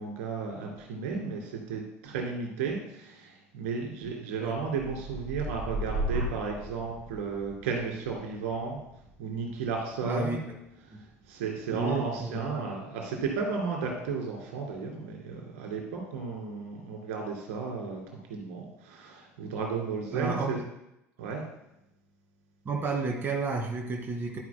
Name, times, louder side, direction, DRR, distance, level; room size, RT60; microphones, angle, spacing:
voice 1, 0.0-8.8 9.2-10.4 11.3-18.0 18.3-20.6 21.2-21.4, right 5 dB, 60° right, 1 dB, 2.3 m, -34 dB
sound 1, 4.7-12.5 13.0-13.4, right 1 dB, 45° right, 2.1 m, -38 dB
voice 2, 10.1-10.4 11.7-12.7 20.1-20.5 22.7-24.4, right 3 dB, 25° right, 0 dB, 2.0 m, -31 dB
11.5 x 9.4 x 2.2 m, 0.84 s
figure-of-eight pair, 65°, 8 cm